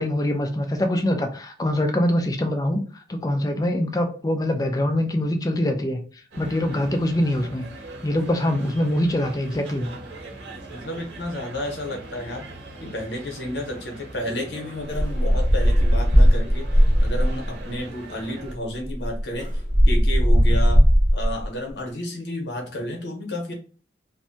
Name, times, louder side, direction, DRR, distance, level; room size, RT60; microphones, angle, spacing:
voice 1, 0.0-2.8 3.1-6.0 6.4-7.7 8.0-9.9, left 1 dB, 20° left, 4 dB, 0.4 m, -23 dB
sound 1, 6.3-18.6, right 2 dB, 85° right, 0.9 m, -41 dB
voice 2, 10.7-12.4 12.8-16.7 17.0-20.8 21.1-23.5, left 1 dB, 75° left, 1 dB, 0.9 m, -31 dB
sound 2, 14.9-17.5 18.4-18.5 18.8-21.5, equal, 25° right, 0.9 m, -18 dB
2.6 x 2.1 x 2.6 m, 0.39 s
head